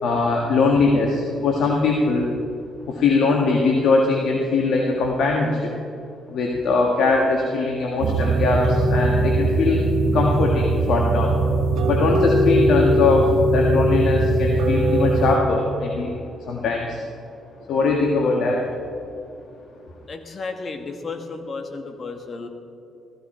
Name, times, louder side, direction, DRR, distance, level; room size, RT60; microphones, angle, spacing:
voice 1, 0.0-2.3 2.9-5.7 6.3-9.8 10.1-11.3 11.8-16.1 16.5-17.0 17.7-18.6, left 3 dB, 75° left, 0 dB, 1.7 m, -21 dB
sound 1, 8.0-15.4, right 1 dB, 70° right, 2.1 m, -20 dB
voice 2, 20.1-22.5, left 4 dB, 40° left, 5 dB, 1.7 m, -33 dB
15.5 x 15.0 x 4.4 m, 2.6 s
cardioid pair, 90°, 0 cm